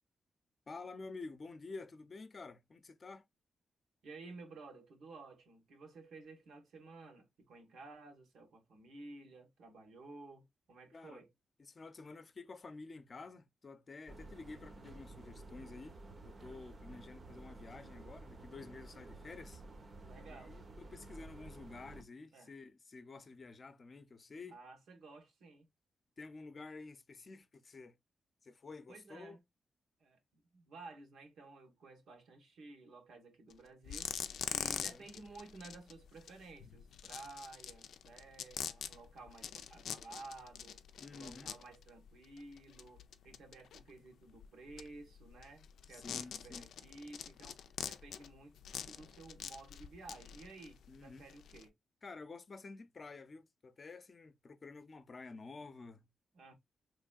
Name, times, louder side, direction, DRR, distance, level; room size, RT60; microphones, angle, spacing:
voice 1, 0.7-3.2 10.9-11.2 11.6-16.0 16.2-19.6 20.3-24.6 26.2-28.0 28.4-29.4 34.6-35.1 41.0-41.5 45.9-46.7 50.9-51.2 52.0-56.1, left 3 dB, 40° left, 0.6 m, -50 dB
voice 2, 4.0-11.3 20.0-20.6 22.3-22.5 24.4-25.7 28.9-29.4 30.0-34.2 34.5-40.8 41.1-48.6 48.8-51.7 56.3-56.5, right 3 dB, 80° right, 1.5 m, -54 dB
sound 1, 14.1-22.0, right 2 dB, 45° right, 0.9 m, -52 dB
sound 2, 33.5-33.6 33.8-51.7, left 8 dB, 90° left, 0.4 m, -45 dB
4.4 x 3.1 x 2.3 m
cardioid pair, 95°, 0 cm